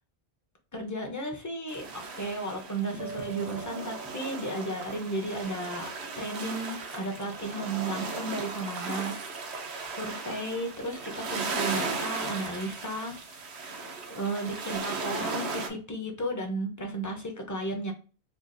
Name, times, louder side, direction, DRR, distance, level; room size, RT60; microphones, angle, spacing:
voice 1, 0.7-9.2 9.8-17.9, right 1 dB, 20° left, 3 dB, 0.6 m, -34 dB
sound 1, 1.7-15.7, right 4 dB, 75° right, 1.0 m, -36 dB
sound 2, 3.0-6.1, right 5 dB, 55° right, 0.9 m, -46 dB
4.5 x 2.4 x 2.5 m, 0.37 s
omnidirectional pair, 1.1 m